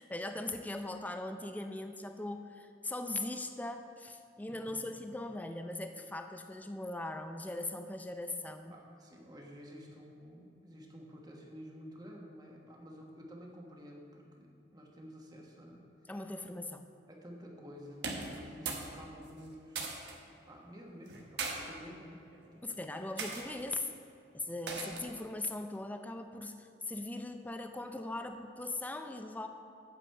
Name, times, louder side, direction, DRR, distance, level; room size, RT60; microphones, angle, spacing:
voice 1, 0.0-8.7 16.1-16.8 22.6-23.9 24.3-29.5, left 2 dB, 10° left, 7 dB, 0.4 m, -40 dB
voice 2, 8.7-15.8 17.1-19.9 20.5-22.2 22.5-22.8 24.7-25.0, equal, 20° right, -1 dB, 1.2 m, -51 dB
sound 1, 17.9-18.9 19.2-20.2 21.1-21.6 22.3-22.6 23.2-23.4 24.7-25.1, right 4 dB, 65° right, 1.2 m, -39 dB
8.4 x 5.2 x 7.6 m, 2.6 s
head